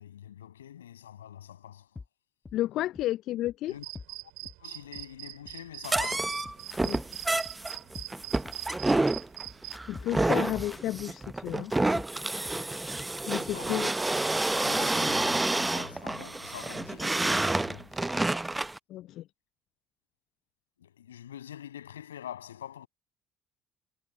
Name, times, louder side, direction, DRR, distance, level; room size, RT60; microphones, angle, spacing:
voice 1, 0.0-2.0 3.7-3.9 4.6-6.5 13.5-13.8 14.6-18.3 20.8-22.9, left 10 dB, 85° left, 7.3 m, -45 dB
sound 1, 2.0-2.1 2.4-2.6 2.9-3.0 3.5-3.6 3.9-4.1 4.4-4.6 4.9-5.0 5.5-5.6 5.9-13.8, left 4 dB, 25° left, 1.6 m, -46 dB
voice 2, 2.5-3.7 6.8-7.0 9.9-11.7 13.3-13.9 14.8-14.9 18.9-19.3, left 14 dB, 60° left, 0.5 m, -32 dB
sound 2, 3.7-9.8, right 26 dB, 70° right, 4.0 m, -43 dB
sound 3, 5.8-18.8, right 2 dB, 15° right, 0.8 m, -29 dB
figure-of-eight pair, 55°, 0 cm